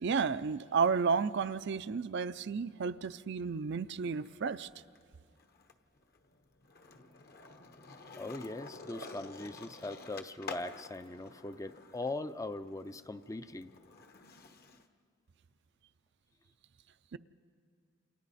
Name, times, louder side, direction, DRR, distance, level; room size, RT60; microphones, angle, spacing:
voice 1, 0.0-4.7 17.1-17.2, right 5 dB, 60° right, 0.5 m, -32 dB
Skateboard, 2.7-4.3 4.6-14.9, left 4 dB, 50° left, 1.1 m, -51 dB
voice 2, 8.2-13.7, left 2 dB, 15° left, 0.5 m, -40 dB
29.5 x 28.5 x 4.2 m
head